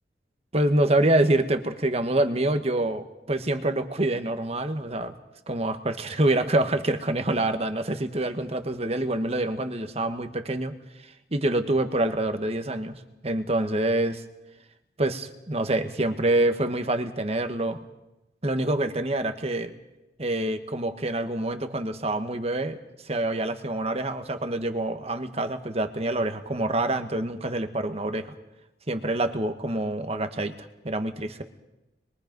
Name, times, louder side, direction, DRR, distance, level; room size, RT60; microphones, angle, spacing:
voice 1, 0.5-5.1 5.5-10.7 11.3-14.2 15.0-17.8 18.4-19.7 20.2-22.8 23.0-28.3 28.9-30.5 30.8-31.4, right 1 dB, 35° right, 8 dB, 1.4 m, -26 dB
25.5 x 22.0 x 5.4 m, 0.97 s
head